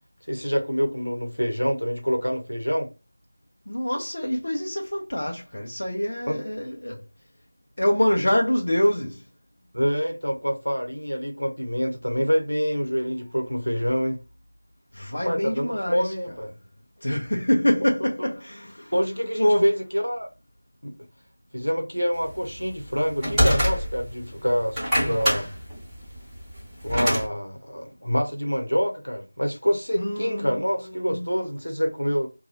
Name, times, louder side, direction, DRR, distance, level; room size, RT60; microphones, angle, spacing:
voice 1, 0.3-2.9 6.3-6.4 6.9-7.0 9.7-14.2 15.2-16.5 18.9-20.3 20.8-20.9 21.5-25.5 26.8-32.3, equal, 85° left, 0.9 m, -26 dB
voice 2, 3.7-7.0 7.8-9.2 14.9-16.1 17.0-18.9 19.4-19.7 29.9-31.3, equal, 55° left, 0.6 m, -25 dB
sound 1, 22.5-24.2 24.6-27.3, equal, ahead, 1.2 m, -24 dB
2.7 x 2.3 x 2.7 m
figure-of-eight pair, 170°, 0 cm